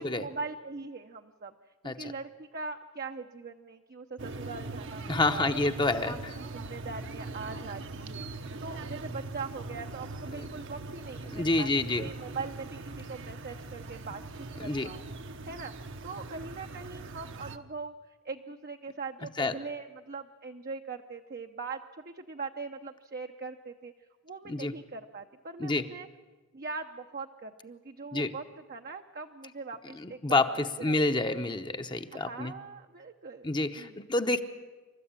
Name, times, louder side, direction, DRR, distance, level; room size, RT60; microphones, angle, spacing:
voice 1, 0.0-1.5 1.8-5.7 6.0-6.3 6.5-8.3 8.6-15.0 15.4-15.7 16.0-17.9 18.2-23.9 24.2-26.1 26.5-31.1 32.1-33.5 33.8-34.0, right 4 dB, 45° right, 4 dB, 0.7 m, -41 dB
sound 1, 4.2-17.6, right 3 dB, 60° right, 1.0 m, -41 dB
voice 2, 5.1-6.2 10.3-10.5 11.3-12.1 14.6-14.9 19.4-19.5 24.5-24.7 25.6-25.8 28.1-28.3 30.0-32.5 33.4-34.4, left 2 dB, 20° left, 7 dB, 0.8 m, -28 dB
27.5 x 13.5 x 8.8 m, 1.3 s
head